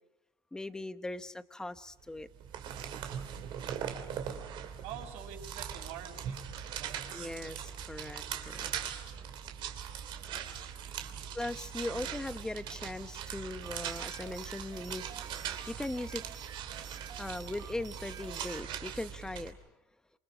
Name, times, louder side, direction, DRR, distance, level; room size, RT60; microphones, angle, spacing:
voice 1, 0.5-2.3 7.1-8.7 11.3-16.2 17.2-19.6, left 2 dB, 5° left, 12 dB, 0.8 m, -39 dB
sound 1, 2.2-19.5, right 8 dB, 45° right, 2.9 m, -41 dB
voice 2, 4.8-6.4 6.8-7.6 11.0-11.4 11.8-12.3 12.6-12.8, right 9 dB, 65° right, 3 dB, 6.8 m, -48 dB
sound 2, 13.6-18.7, right 8 dB, 30° right, 1.1 m, -50 dB
29.0 x 27.5 x 5.0 m, 0.87 s
cardioid pair, 165°, 12 cm